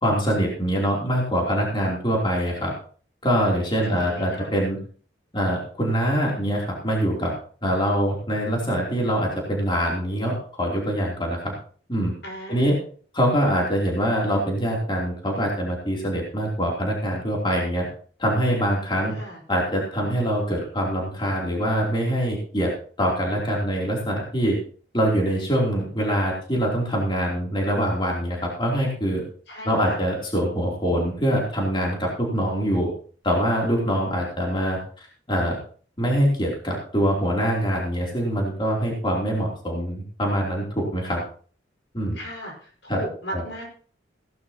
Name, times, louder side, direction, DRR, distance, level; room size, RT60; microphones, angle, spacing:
voice 1, 0.0-2.7 3.2-4.8 5.3-7.3 7.6-11.5 11.9-12.1 12.5-12.8 13.1-17.8 18.2-19.1 19.5-22.7 23.0-24.6 24.9-29.2 29.6-32.9 33.2-35.6 36.0-41.2 41.9-42.2 42.9-43.0 43.3-43.4, equal, 25° left, -2 dB, 3.2 m, -24 dB
voice 2, 3.9-4.5 12.2-12.8 19.1-19.4 29.5-30.0 42.1-43.6, equal, 85° left, 0 dB, 5.2 m, -36 dB
17.0 x 11.5 x 2.9 m, 0.44 s
head